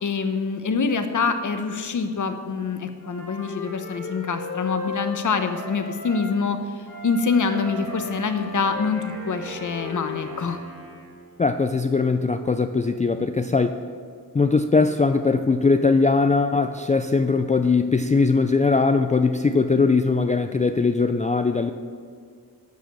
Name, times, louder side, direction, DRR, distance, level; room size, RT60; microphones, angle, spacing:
voice 1, 0.0-10.6, left 5 dB, 50° left, 8 dB, 1.0 m, -25 dB
Wind instrument woodwind instrument, 3.0-6.3 6.8-10.6, left 3 dB, 90° left, 2.6 m, -35 dB
Wind instrument woodwind instrument 2, 7.5-11.5, right 3 dB, 80° right, 2.1 m, -44 dB
voice 2, 11.4-13.8 14.3-21.7, left 4 dB, 20° left, 7 dB, 0.4 m, -20 dB
13.0 x 4.9 x 6.8 m, 2.1 s
wide cardioid pair, 90°, 37 cm